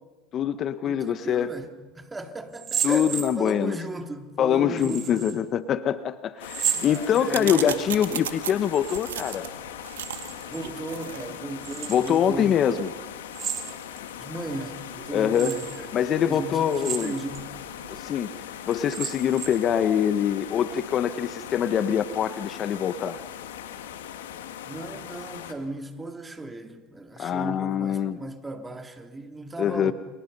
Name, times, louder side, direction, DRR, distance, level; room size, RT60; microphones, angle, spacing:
voice 1, 0.3-1.5 2.8-3.8 4.4-9.5 11.9-12.9 15.1-15.5 15.9-17.1 17.9-18.3 18.7-23.2 27.2-28.2 29.6-29.9, left 9 dB, 45° left, 1.1 m, -24 dB
voice 2, 0.8-1.7 1.9-5.2 6.8-7.8 10.5-12.6 14.2-15.9 16.2-17.5 24.7-29.9, right 2 dB, 15° right, 3.0 m, -36 dB
sound 1, 2.5-3.8 4.8-5.4 6.4-7.6 8.6-9.4 9.6-10.6 11.6-12.2 13.3-14.1 14.6-14.7 15.3-15.8 16.7-17.4 17.9-18.0 18.7-19.7, right 8 dB, 40° right, 5.2 m, -33 dB
sound 2, 6.4-25.5, left 10 dB, 85° left, 2.2 m, -40 dB
sound 3, 6.6-18.0, right 10 dB, 90° right, 2.0 m, -39 dB
30.0 x 28.0 x 5.5 m
hypercardioid pair, 85°, 0 cm